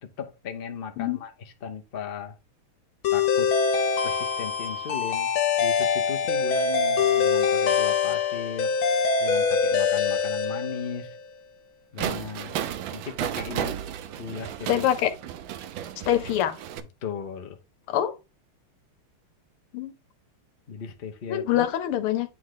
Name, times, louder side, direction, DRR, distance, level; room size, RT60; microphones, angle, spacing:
voice 1, 0.0-2.4 3.1-3.5 4.0-5.3 5.6-8.7 9.2-11.2 11.9-12.5 12.9-13.8 14.2-14.9 17.0-17.6 20.7-21.7, left 6 dB, 50° left, 0.6 m, -36 dB
sound 1, 3.0-11.2, left 5 dB, 70° left, 1.8 m, -24 dB
sound 2, 12.0-16.8, right 10 dB, 70° right, 1.3 m, -33 dB
voice 2, 14.7-15.1 16.1-16.6 17.9-18.1 19.7-20.0 21.3-22.3, left 11 dB, 85° left, 1.8 m, -24 dB
9.2 x 3.2 x 3.8 m
omnidirectional pair, 2.4 m